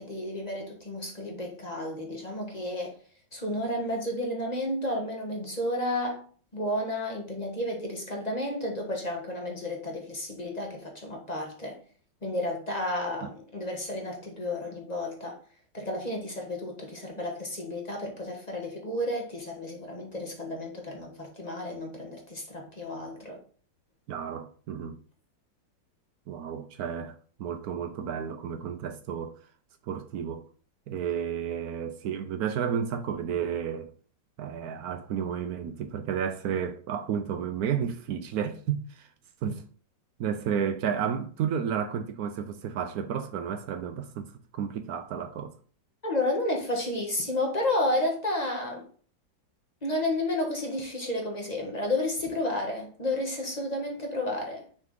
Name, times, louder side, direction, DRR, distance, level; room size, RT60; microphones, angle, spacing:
voice 1, 0.0-3.0 3.3-6.2 6.5-11.8 12.2-15.4 15.7-23.4 46.0-48.9 49.8-54.6, left 1 dB, 25° left, 1.3 m, -31 dB
voice 2, 24.1-25.0 26.3-29.3 29.9-30.4 30.9-33.9 34.4-39.1 39.4-39.6 40.2-45.5, right 8 dB, 70° right, 1.0 m, -32 dB
6.1 x 4.1 x 3.8 m
omnidirectional pair, 2.0 m